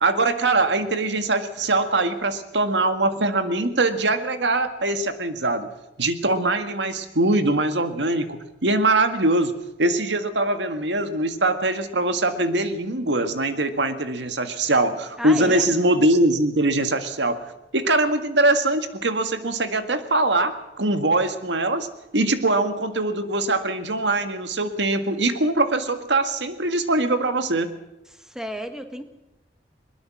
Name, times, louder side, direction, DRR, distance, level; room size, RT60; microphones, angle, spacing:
voice 1, 0.0-5.7 6.0-9.5 9.8-17.4 17.7-21.9 22.1-27.7, right 2 dB, 90° right, 8 dB, 1.8 m, -22 dB
voice 2, 15.2-15.7 28.1-29.0, equal, 5° right, 7 dB, 1.7 m, -33 dB
21.5 x 21.0 x 6.2 m, 0.92 s
head